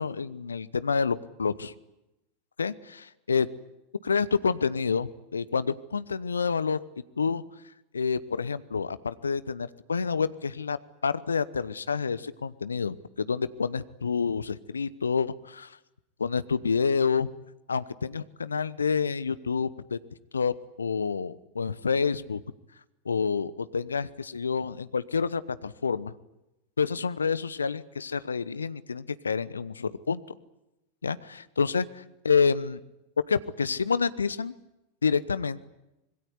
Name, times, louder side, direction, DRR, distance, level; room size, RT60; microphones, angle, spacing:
voice 1, 0.0-1.7 2.6-3.5 4.0-6.8 7.2-7.4 7.9-10.8 11.0-15.8 16.2-17.3 17.7-20.0 20.3-22.4 23.0-26.1 26.8-30.2 31.0-31.8 32.2-32.8 33.3-34.5 35.0-35.6, left 5 dB, 80° left, 16 dB, 0.9 m, -28 dB
25.5 x 21.5 x 9.8 m, 0.93 s
figure-of-eight pair, 85°, 0 cm